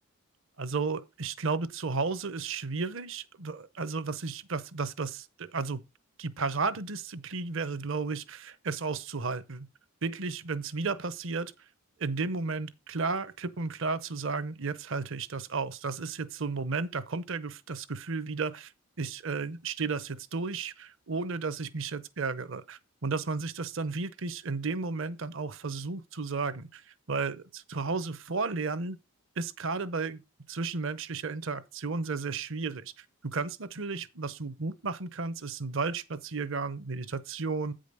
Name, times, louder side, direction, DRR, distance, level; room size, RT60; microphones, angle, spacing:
voice 1, 0.6-5.8 6.2-9.7 10.0-11.5 12.0-18.7 19.0-29.0 29.4-30.2 30.5-37.7, right 4 dB, 60° right, 0.7 m, -33 dB
8.7 x 5.1 x 5.3 m
head